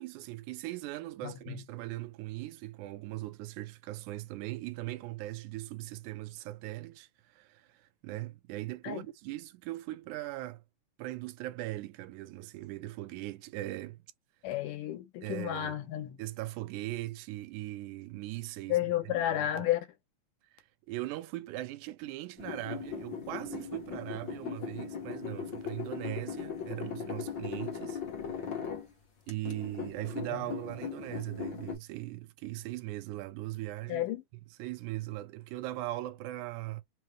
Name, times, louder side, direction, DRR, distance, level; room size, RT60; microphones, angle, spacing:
voice 1, 0.0-10.6 11.0-14.0 15.2-15.8 16.2-18.9 19.2-19.6 20.9-28.0 28.4-28.6 29.3-34.1 34.6-36.8, right 17 dB, 80° right, 1.9 m, -39 dB
voice 2, 1.2-1.6 8.8-9.0 14.4-16.2 18.7-19.9 30.3-30.5 33.9-34.2, left 12 dB, 85° left, 2.4 m, -32 dB
sound 1, 22.4-28.9 29.3-31.7, left 7 dB, 55° left, 1.3 m, -39 dB
5.6 x 2.2 x 3.1 m
omnidirectional pair, 3.7 m